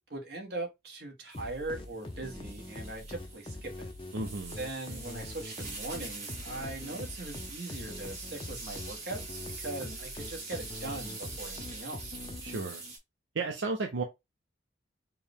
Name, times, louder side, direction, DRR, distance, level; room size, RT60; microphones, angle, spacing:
voice 1, 0.1-3.9 4.6-12.2, right 2 dB, 55° right, 1.2 m, -40 dB
sound 1, 1.3-12.9, left 1 dB, 25° left, 0.5 m, -44 dB
sound 2, 1.3-13.0, right 3 dB, 35° right, 2.3 m, -44 dB
voice 2, 4.1-4.6 12.4-12.8 13.3-14.0, right 3 dB, 80° right, 0.6 m, -33 dB
4.6 x 2.2 x 3.4 m
head